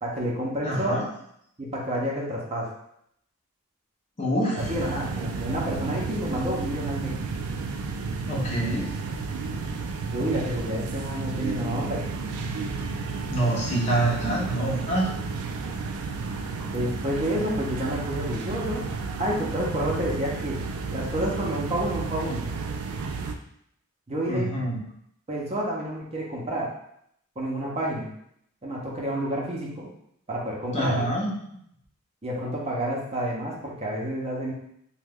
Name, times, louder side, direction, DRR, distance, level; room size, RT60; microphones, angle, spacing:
voice 1, 0.0-1.0 1.6-2.7 4.6-7.1 10.0-12.1 16.7-18.8 19.2-20.6 20.9-22.4 24.1-24.5 25.3-26.7 27.4-28.1 28.6-29.9 30.3-31.1 32.2-34.5, right 1 dB, 30° right, -3 dB, 0.6 m, -29 dB
voice 2, 0.6-1.1 4.2-4.6 8.3-9.0 13.3-15.1 24.3-24.8 30.7-31.3, right 1 dB, 30° left, -3 dB, 0.7 m, -26 dB
sound 1, 4.6-23.4, right 4 dB, 75° right, 0.3 m, -32 dB
2.9 x 2.2 x 3.5 m, 0.71 s
head